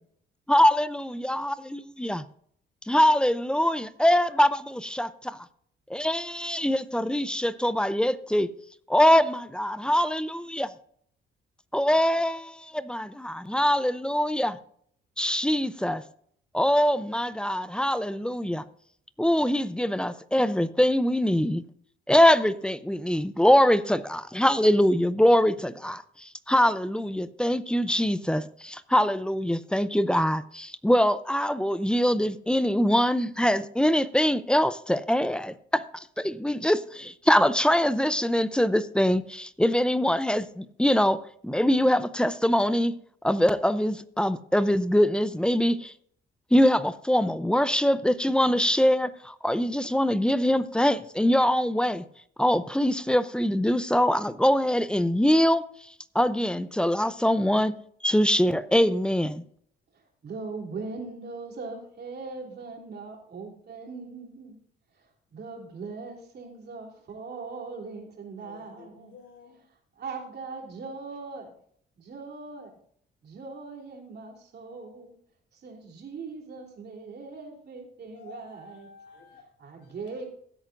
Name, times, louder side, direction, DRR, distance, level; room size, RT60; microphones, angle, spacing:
voice 1, 0.5-2.2 2.9-5.4 5.9-8.5 8.9-10.7 11.7-14.6 15.2-16.0 16.5-18.6 19.2-21.6 22.1-42.9 43.2-45.9 46.5-52.0 52.4-55.6 56.1-59.4, equal, 5° left, 0.6 m, -23 dB
voice 2, 59.9-64.6 64.9-69.1 69.7-71.5 72.0-72.7 73.2-75.1 75.5-78.9 79.6-80.3, right 4 dB, 55° right, 3.3 m, -40 dB
voice 3, 68.4-69.6 78.1-79.4 79.7-80.0, left 5 dB, 65° left, 3.7 m, -51 dB
16.0 x 8.8 x 2.5 m
cardioid pair, 90°, 20 cm